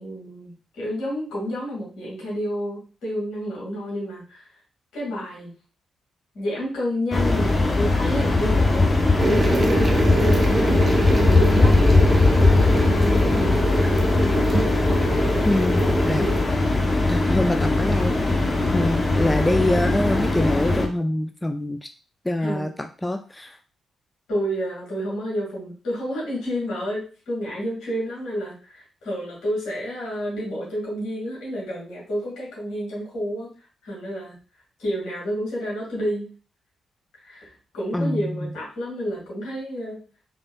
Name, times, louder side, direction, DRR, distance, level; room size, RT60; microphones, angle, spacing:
voice 1, 0.0-4.5 4.9-5.5 6.3-13.8 15.3-16.4 22.4-22.7 24.3-33.5 33.8-34.4 34.8-36.3 37.2-40.0, equal, 75° left, -4 dB, 1.9 m, -30 dB
sound 1, 7.1-20.9, left 2 dB, 35° left, 0.8 m, -20 dB
sound 2, 9.2-16.4, right 2 dB, 40° right, 0.6 m, -25 dB
voice 2, 15.5-16.2 17.1-18.1 18.7-21.9 22.2-23.6 37.9-38.5, left 1 dB, 15° left, 6 dB, 0.4 m, -25 dB
3.6 x 3.4 x 2.2 m, 0.37 s
hypercardioid pair, 40°, 0 cm